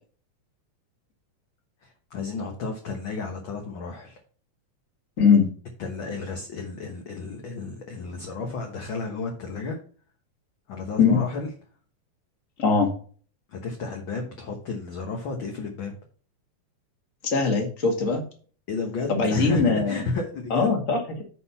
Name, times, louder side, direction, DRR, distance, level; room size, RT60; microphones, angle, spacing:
voice 1, 1.8-4.2 5.8-9.8 10.7-11.5 13.5-15.9 18.7-20.7, left 4 dB, 50° left, 2 dB, 1.6 m, -32 dB
voice 2, 5.2-5.5 11.0-11.2 12.6-12.9 17.2-18.2 19.1-20.0 20.5-21.2, left 5 dB, 30° left, 3 dB, 2.0 m, -21 dB
9.9 x 4.2 x 5.6 m, 0.42 s
omnidirectional pair, 3.5 m